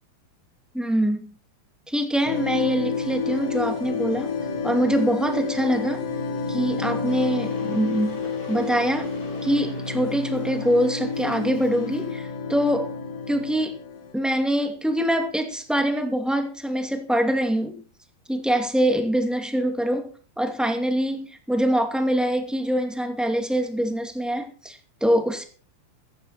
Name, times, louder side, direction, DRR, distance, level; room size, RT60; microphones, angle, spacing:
voice 1, 0.7-1.3 1.9-4.3 4.6-6.0 6.5-9.1 9.4-12.9 13.3-13.7 14.1-17.8 18.3-20.1 20.4-25.4, equal, ahead, 1.1 m, -24 dB
sound 1, 2.2-14.1, left 4 dB, 65° left, 4.2 m, -30 dB
Water / Boiling, 7.1-12.2, left 1 dB, 30° left, 4.4 m, -45 dB
16.0 x 14.0 x 4.3 m
omnidirectional pair, 4.4 m